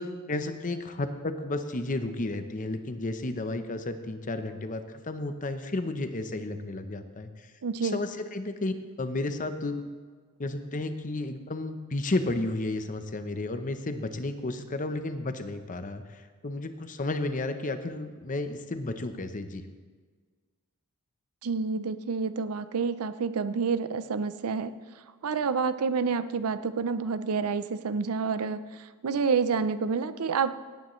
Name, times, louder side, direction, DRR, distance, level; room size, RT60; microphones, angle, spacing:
voice 1, 0.0-7.5 7.8-9.9 10.4-19.6, left 2 dB, 35° left, 8 dB, 0.7 m, -32 dB
voice 2, 7.6-8.0 21.4-24.7 25.2-30.5, right 5 dB, 80° right, 13 dB, 0.5 m, -28 dB
17.5 x 9.1 x 3.1 m, 1.5 s
head